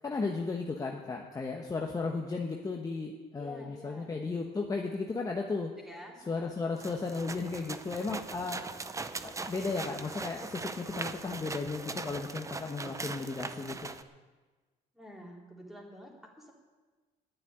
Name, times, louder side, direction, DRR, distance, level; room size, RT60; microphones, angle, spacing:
voice 1, 0.0-5.7 6.3-8.6 9.2-13.8, left 4 dB, 20° left, 1 dB, 1.2 m, -35 dB
voice 2, 3.4-4.1 5.9-6.6 14.9-16.5, left 1 dB, ahead, -2 dB, 3.5 m, -48 dB
sound 1, 6.8-14.0, right 3 dB, 20° right, 0.7 m, -40 dB
10.5 x 9.3 x 9.6 m, 1.3 s
cardioid pair, 110°, 17 cm